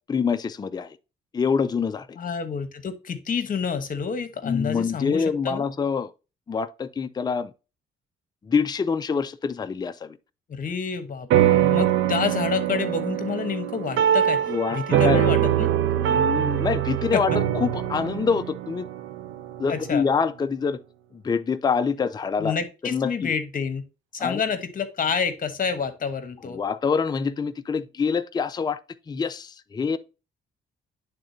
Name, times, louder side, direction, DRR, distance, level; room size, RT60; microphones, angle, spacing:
voice 1, 0.1-1.0 1.3-2.2 4.4-6.1 6.5-7.5 8.4-10.2 14.5-15.2 16.0-17.3 17.5-18.9 19.6-20.8 21.1-22.6 22.8-23.3 24.2-24.4 26.4-28.8 29.1-30.0, left 5 dB, 20° left, 0.4 m, -25 dB
voice 2, 2.2-5.7 10.5-14.4 14.7-15.7 17.1-17.4 19.7-20.0 22.4-23.8 24.1-26.6, left 6 dB, 45° left, 1.1 m, -28 dB
sound 1, 11.3-20.0, right 11 dB, 80° right, 0.7 m, -23 dB
9.9 x 3.7 x 2.7 m
cardioid pair, 90°, 20 cm